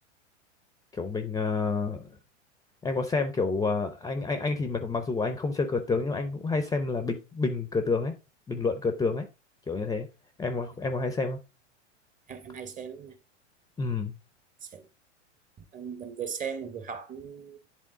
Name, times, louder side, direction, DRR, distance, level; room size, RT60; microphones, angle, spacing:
voice 1, 0.9-2.0 2.8-8.1 8.5-9.3 9.7-10.1 10.4-11.4 13.8-14.1, left 4 dB, 10° left, 0.6 m, -29 dB
voice 2, 12.3-13.2 14.6-14.9 15.6-17.6, right 7 dB, 20° right, 0.8 m, -38 dB
10.5 x 3.5 x 3.5 m
hypercardioid pair, 105°, 37 cm